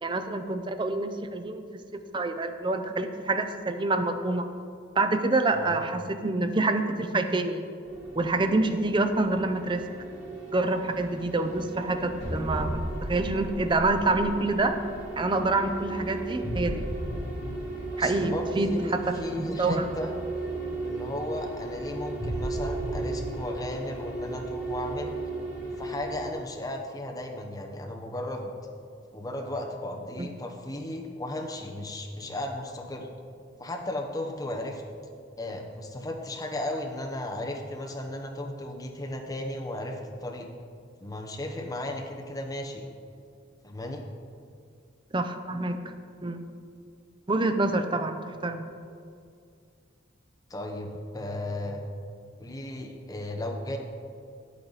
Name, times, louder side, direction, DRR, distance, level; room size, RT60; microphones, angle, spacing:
voice 1, 0.0-1.6 1.9-4.5 5.0-7.6 8.2-9.8 10.5-14.8 15.2-16.9 18.0-19.8 30.2-30.3 45.1-45.9 46.2-46.4 47.3-48.6, right 2 dB, 25° right, 7 dB, 0.5 m, -27 dB
sound 1, 7.8-26.2, right 2 dB, 5° right, 2.4 m, -35 dB
sound 2, 12.2-14.9, equal, 55° left, 1.9 m, -34 dB
voice 2, 17.9-20.1 20.8-25.1 25.7-28.5 29.1-33.1 33.6-34.8 35.4-40.5 41.0-42.9 43.6-44.0 50.5-51.8 52.4-53.8, left 1 dB, 20° left, 2 dB, 0.9 m, -35 dB
9.5 x 8.6 x 4.1 m, 2.3 s
head